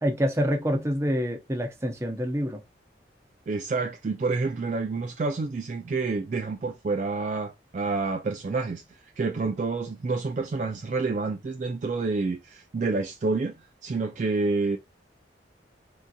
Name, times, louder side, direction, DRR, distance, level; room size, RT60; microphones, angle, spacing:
voice 1, 0.0-2.6, equal, 15° right, 0.7 m, -26 dB
voice 2, 3.5-8.8 9.2-14.8, right 3 dB, 40° right, 0.3 m, -28 dB
3.8 x 2.7 x 2.2 m
head